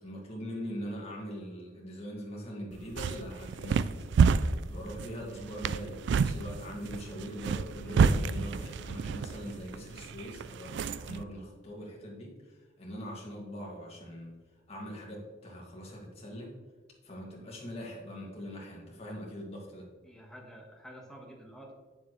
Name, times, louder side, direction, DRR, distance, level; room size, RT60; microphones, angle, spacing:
voice 1, 0.0-4.1 4.7-14.3 14.7-16.5 17.0-19.9, equal, 30° left, -3 dB, 2.1 m, -42 dB
sound 1, 2.7-11.2, right 5 dB, 60° right, 0.3 m, -29 dB
voice 2, 20.0-21.7, equal, 5° left, 0 dB, 1.3 m, -49 dB
8.9 x 7.1 x 3.2 m, 1.4 s
head